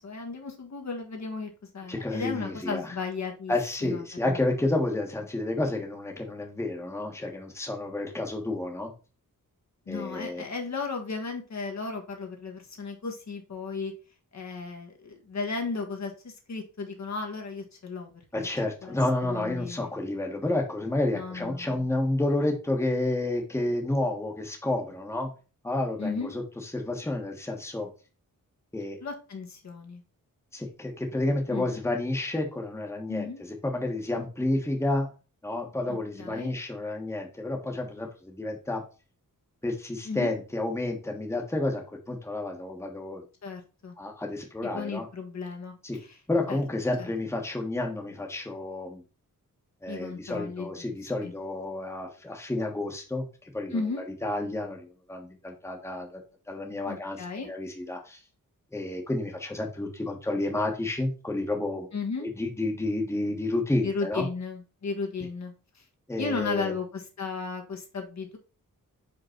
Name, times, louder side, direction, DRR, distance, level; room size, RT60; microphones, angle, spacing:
voice 1, 0.0-3.5 3.8-4.4 9.9-13.9 14.3-18.1 18.4-18.5 18.8-19.0 19.2-19.9 21.1-21.9 26.0-26.3 29.0-30.0 31.5-31.7 33.1-33.4 35.9-36.5 40.0-40.3 43.4-44.0 44.7-46.2 46.5-46.6 47.0-47.1 49.9-51.0 51.2-51.3 53.7-54.0 56.9-57.5 61.9-62.3 63.8-65.8 66.2-68.4, left 4 dB, 55° left, 2 dB, 1.5 m, -35 dB
voice 2, 1.9-2.9 3.5-8.9 9.9-10.4 18.3-25.3 25.6-27.9 28.7-29.0 30.5-35.1 35.4-38.8 39.6-43.2 44.0-45.1 45.8-46.0 46.3-49.0 49.8-53.3 53.5-56.2 56.5-58.2 58.7-61.9 62.2-64.3 66.1-66.7, left 2 dB, 10° left, 1 dB, 1.3 m, -30 dB
5.2 x 3.9 x 5.8 m, 0.34 s
wide cardioid pair, 135°, 33 cm